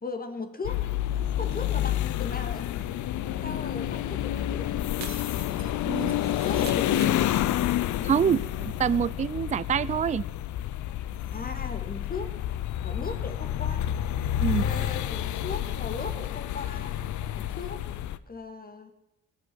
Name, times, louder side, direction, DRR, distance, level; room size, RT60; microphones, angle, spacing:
voice 1, 0.0-0.9 1.4-2.7 3.4-5.1 6.1-7.5 11.3-12.4 12.8-13.9 14.5-17.0 17.5-17.9 18.3-18.9, left 4 dB, 30° left, 7 dB, 2.1 m, -38 dB
sound 1, 0.6-18.2, left 12 dB, 75° left, 0.6 m, -29 dB
Shatter, 5.0-8.1 8.3-8.4 8.7-8.8, right 7 dB, 65° right, 1.7 m, -44 dB
voice 2, 5.9-6.2 8.0-10.2 14.4-14.6, right 8 dB, 25° right, 18 dB, 0.4 m, -26 dB
19.0 x 6.3 x 7.8 m, 0.98 s
cardioid pair, 90°, 30 cm